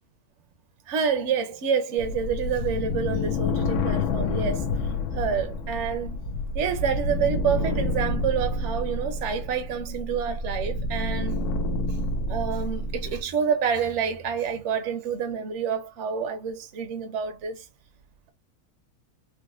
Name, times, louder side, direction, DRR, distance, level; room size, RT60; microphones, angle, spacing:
voice 1, 0.9-4.7 5.1-6.2 6.5-11.4 11.9-12.0 12.3-17.7, right 7 dB, 60° right, 0.9 m, -28 dB
sound 1, 2.0-13.2, left 2 dB, 85° left, 1.1 m, -28 dB
3.9 x 2.2 x 2.5 m
omnidirectional pair, 1.6 m